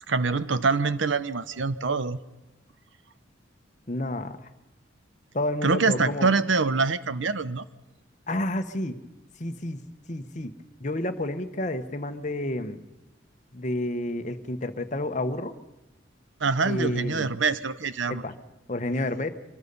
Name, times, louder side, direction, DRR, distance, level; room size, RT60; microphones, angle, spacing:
voice 1, 0.1-2.2 5.6-7.6 16.4-18.2, right 4 dB, 80° right, 14 dB, 0.9 m, -25 dB
voice 2, 3.9-4.4 5.3-6.3 8.3-8.9 9.4-9.8 10.1-10.5 10.8-12.8 13.5-15.5 16.6-17.3 18.1-18.3 18.7-19.3, left 1 dB, 40° left, 8 dB, 1.1 m, -30 dB
24.5 x 20.5 x 5.5 m, 1.0 s
head